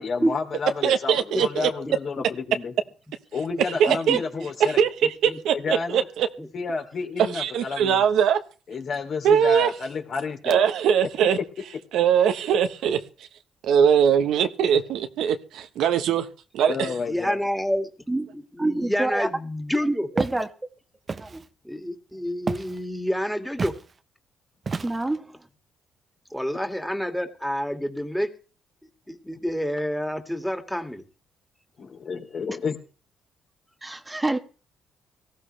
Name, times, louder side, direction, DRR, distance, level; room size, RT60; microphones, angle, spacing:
voice 1, 0.0-2.7 3.3-4.8 5.5-6.0 6.5-8.0 8.7-10.6 16.6-17.4 31.8-32.8, left 4 dB, 55° left, 2.9 m, -30 dB
voice 2, 0.8-1.7 3.8-4.2 4.8-4.9 5.2-6.3 7.3-8.4 9.2-9.7 10.4-11.4 11.9-13.0 13.6-16.3 16.5-16.9, right 8 dB, 80° right, 1.1 m, -21 dB
voice 3, 1.3-2.2 4.3-4.5 5.3-5.4 6.4-6.5 17.1-17.9 18.3-20.1 21.6-23.8 26.3-28.3 29.1-31.0, equal, 5° left, 2.2 m, -29 dB
voice 4, 3.9-4.2 18.1-18.3 18.6-19.3 19.9-20.5 21.2-21.4 24.8-25.2 33.8-34.4, right 2 dB, 15° right, 1.3 m, -26 dB
Walk footsteps, 20.2-20.4 21.1-21.5 22.5-22.8 23.6-23.8 24.7-25.2, right 4 dB, 35° right, 0.8 m, -30 dB
18.0 x 14.5 x 3.3 m
cardioid pair, 90°, 0 cm